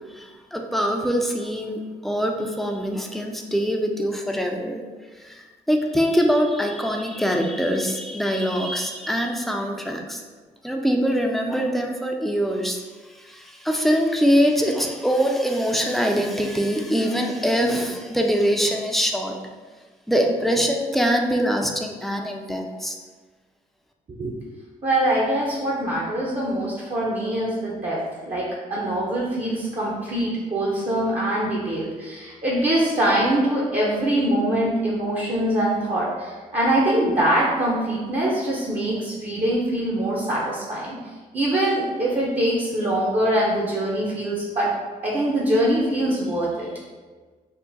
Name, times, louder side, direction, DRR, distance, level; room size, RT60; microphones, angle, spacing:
voice 1, 0.1-4.8 5.1-10.2 10.6-19.4 20.1-23.0, equal, ahead, 2 dB, 0.5 m, -23 dB
voice 2, 24.8-44.8 45.0-46.7, right 1 dB, 35° right, -4 dB, 0.9 m, -23 dB
3.7 x 2.1 x 4.0 m, 1.4 s
hypercardioid pair, 50°, 19 cm